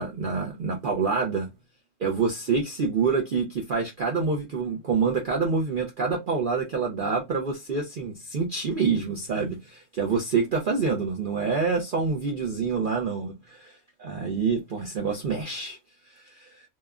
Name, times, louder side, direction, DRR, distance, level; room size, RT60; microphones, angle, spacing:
voice 1, 0.0-1.5 2.0-15.8 16.1-16.6, right 5 dB, 75° right, 0.4 m, -27 dB
2.9 x 2.2 x 2.4 m
omnidirectional pair, 1.6 m